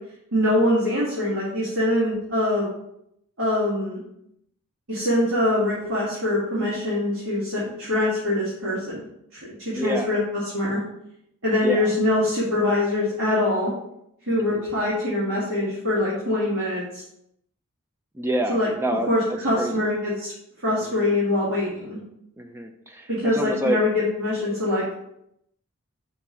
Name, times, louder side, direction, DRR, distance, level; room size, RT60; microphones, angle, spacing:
voice 1, 0.3-2.7 3.4-4.0 4.9-9.0 9.3-10.2 10.5-10.8 11.4-13.7 14.3-17.0 18.5-18.7 19.1-20.3 20.6-22.0 23.1-25.0, left 1 dB, 65° right, -9 dB, 2.1 m, -23 dB
voice 2, 9.7-10.2 11.6-11.9 14.5-14.7 18.1-19.9 20.8-21.1 22.4-23.8, right 1 dB, 10° right, 4 dB, 0.4 m, -28 dB
5.7 x 3.9 x 4.4 m, 0.77 s
head